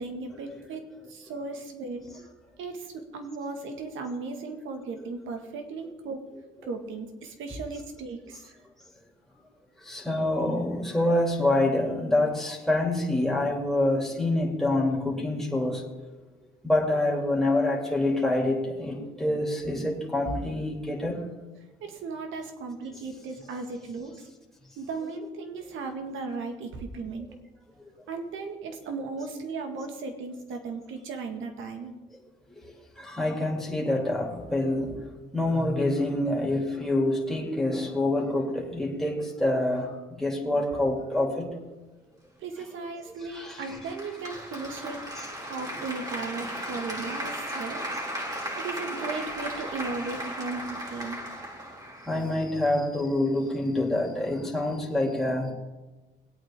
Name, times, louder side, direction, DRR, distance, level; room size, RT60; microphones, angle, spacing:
voice 1, 0.0-2.0 2.6-6.3 6.6-8.6 21.8-24.3 24.8-27.3 28.1-32.0 42.4-45.1 45.5-47.9 48.6-51.2, right 4 dB, 85° right, 2.0 m, -36 dB
voice 2, 9.8-16.1 16.6-21.2 33.0-35.0 35.3-41.5 43.3-43.6 52.1-55.5, left 1 dB, ahead, 3.1 m, -26 dB
Applause, 43.6-52.6, equal, 20° right, 3.0 m, -36 dB
21.5 x 8.8 x 3.8 m
cardioid pair, 90°, 20 cm